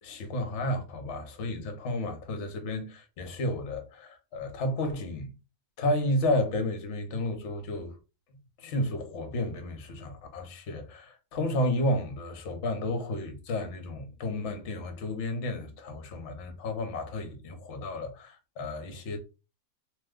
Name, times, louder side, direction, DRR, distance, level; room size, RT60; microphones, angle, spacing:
voice 1, 0.0-5.3 5.8-8.0 8.6-19.2, left 1 dB, 60° left, 1.0 m, -32 dB
3.0 x 2.1 x 3.5 m
omnidirectional pair, 1.5 m